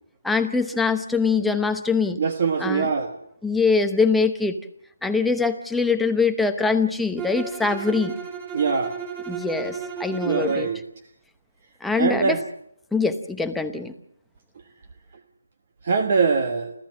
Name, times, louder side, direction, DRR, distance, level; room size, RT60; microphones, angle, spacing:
voice 1, 0.2-2.2 2.6-2.9 3.4-4.6 5.0-8.1 9.3-10.7 11.8-12.4 12.9-13.9, left 4 dB, ahead, 6 dB, 0.9 m, -23 dB
voice 2, 2.2-3.2 8.5-9.0 10.2-10.8 11.9-12.4 15.8-16.7, right 5 dB, 40° right, 8 dB, 1.4 m, -23 dB
Bowed string instrument, 7.2-10.7, right 6 dB, 20° right, 3.6 m, -34 dB
29.0 x 13.5 x 7.5 m, 0.72 s
figure-of-eight pair, 160°, 0 cm